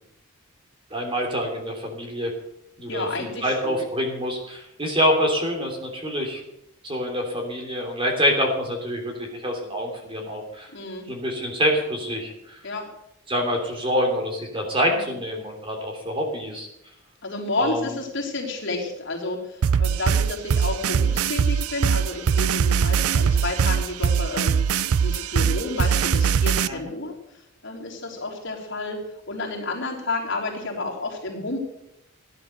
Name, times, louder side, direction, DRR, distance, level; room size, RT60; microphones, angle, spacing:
voice 1, 0.9-2.3 2.8-6.4 6.8-10.7 11.1-12.6 13.3-16.7 17.6-18.0 26.7-26.8, equal, 25° right, 2 dB, 3.3 m, -26 dB
voice 2, 2.9-3.8 10.7-11.1 12.6-12.9 14.9-15.1 17.2-24.6 25.0-27.2 27.6-29.0 29.3-31.6, left 2 dB, 55° left, -2 dB, 3.6 m, -30 dB
sound 1, 19.6-26.7, right 7 dB, 85° right, 0.4 m, -21 dB
16.0 x 10.5 x 6.7 m, 0.83 s
head